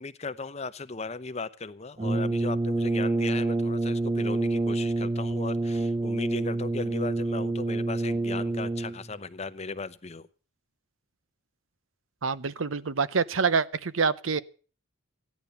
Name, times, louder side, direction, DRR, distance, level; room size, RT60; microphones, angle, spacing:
voice 1, 0.0-10.3, left 4 dB, 30° left, 0.7 m, -37 dB
Brass instrument, 2.0-9.1, right 2 dB, 25° right, 0.6 m, -27 dB
voice 2, 12.2-14.4, right 5 dB, 70° right, 0.7 m, -26 dB
15.0 x 10.5 x 6.9 m
head